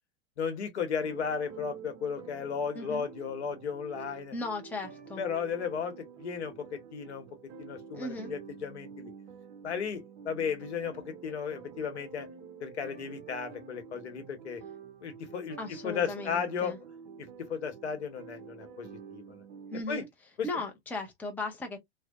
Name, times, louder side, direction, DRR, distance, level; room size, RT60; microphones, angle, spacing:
voice 1, 0.4-4.3 5.2-7.3 7.6-9.1 9.6-12.3 12.6-14.6 15.0-15.6 15.8-16.7 17.4-19.4 19.9-20.0 20.4-20.5, left 6 dB, 80° left, 1.0 m, -35 dB
sound 1, 1.0-19.8, right 6 dB, 45° right, 0.6 m, -48 dB
voice 2, 4.3-5.2 7.9-8.3 15.6-16.8 19.7-20.1 20.4-21.8, left 2 dB, 5° left, 0.5 m, -37 dB
2.6 x 2.1 x 2.3 m
hypercardioid pair, 110°, 33 cm